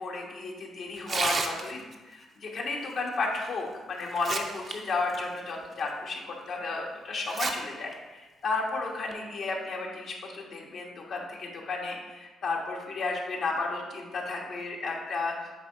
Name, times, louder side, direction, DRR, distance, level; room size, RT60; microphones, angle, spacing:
voice 1, 0.0-15.4, left 3 dB, 65° left, -1 dB, 1.3 m, -33 dB
Tearing, 1.0-2.0 3.4-3.5 4.0-4.7 5.1-5.2 5.9-6.0 7.2-7.5 7.9-8.0 8.9-9.1, right 4 dB, 45° right, 0.7 m, -31 dB
8.0 x 2.9 x 5.6 m, 1.2 s
cardioid pair, 90°, 0 cm